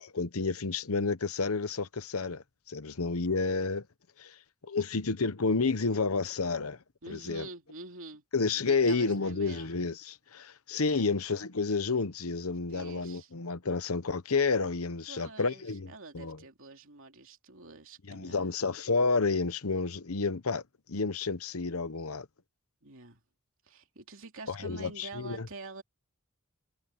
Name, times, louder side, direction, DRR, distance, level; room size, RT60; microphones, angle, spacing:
voice 1, 0.0-3.8 4.2-4.3 4.6-6.8 7.1-7.4 8.3-16.4 18.1-20.6 20.9-22.3 24.5-25.5, left 4 dB, 75° left, 1.0 m, -30 dB
voice 2, 7.0-8.2 8.5-9.7 10.8-11.1 12.7-13.3 15.1-18.6 22.8-23.2 23.6-25.8, right 3 dB, 60° right, 3.2 m, -47 dB
head